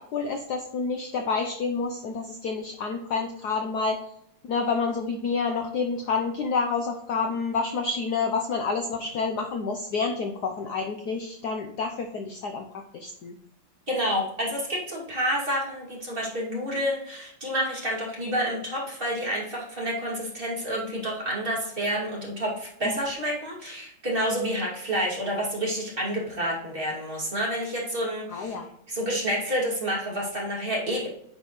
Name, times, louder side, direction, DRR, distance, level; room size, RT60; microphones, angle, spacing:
voice 1, 0.1-4.0 4.4-13.3 22.8-23.0 28.3-28.7, left 4 dB, 65° left, 4 dB, 1.0 m, -29 dB
voice 2, 13.9-28.6 28.9-31.1, equal, 25° right, -4 dB, 2.6 m, -29 dB
9.4 x 5.4 x 3.1 m, 0.73 s
omnidirectional pair, 2.3 m